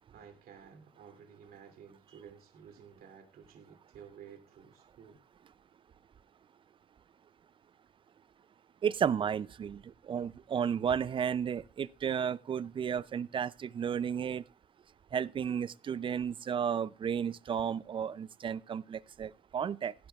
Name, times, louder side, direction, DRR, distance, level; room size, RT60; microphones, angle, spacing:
voice 1, 0.1-5.2, right 7 dB, 60° right, 2.7 m, -53 dB
voice 2, 8.8-14.4 15.1-19.9, right 8 dB, 30° right, 0.4 m, -33 dB
15.5 x 10.5 x 2.3 m
cardioid pair, 110°, 17 cm